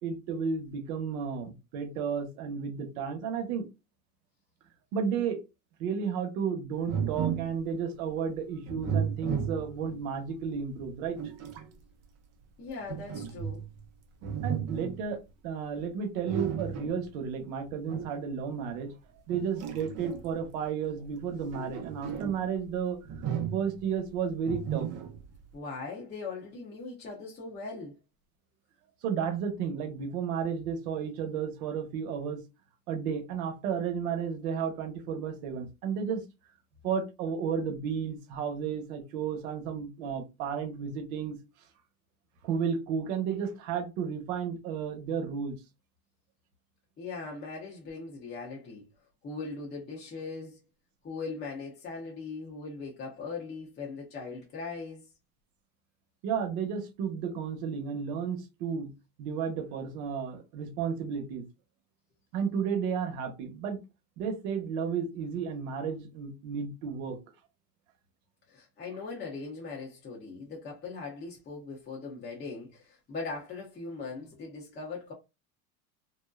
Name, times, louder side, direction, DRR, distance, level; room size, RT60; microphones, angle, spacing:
voice 1, 0.0-3.7 4.9-5.4 5.8-11.2 14.4-18.9 19.3-23.0 23.5-24.9 29.0-32.4 32.9-36.2 36.8-41.4 42.4-45.6 56.2-58.9 59.2-61.5 62.3-63.8 64.2-67.2, right 6 dB, 70° right, 0.9 m, -33 dB
sound 1, 6.9-7.6 8.7-10.0 10.8-11.7 12.9-13.8 14.2-15.0 16.2-17.0 17.9-18.2 19.3-20.4 21.3-22.5 23.0-23.9 24.5-25.3, right 8 dB, 35° right, 0.5 m, -34 dB
voice 2, 12.6-13.6 25.5-28.0 47.0-48.9 49.2-50.6 51.0-55.1 68.5-75.1, left 4 dB, 25° left, 0.7 m, -40 dB
2.6 x 2.1 x 2.3 m
supercardioid pair, 100°, 44 cm